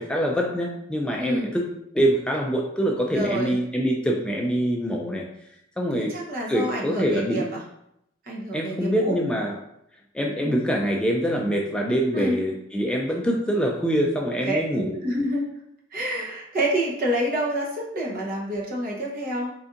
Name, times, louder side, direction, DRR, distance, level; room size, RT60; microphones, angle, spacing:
voice 1, 0.0-1.6 1.9-5.2 5.8-6.1 6.5-7.5 8.5-9.6 10.1-15.0, equal, 5° left, -1 dB, 0.3 m, -24 dB
voice 2, 3.1-3.6 5.9-7.6 8.2-9.2 10.4-10.6 12.1-12.4 14.4-14.6 15.0-15.4 15.9-19.5, right 1 dB, 50° right, -3 dB, 0.9 m, -27 dB
3.8 x 3.4 x 2.5 m, 0.78 s
head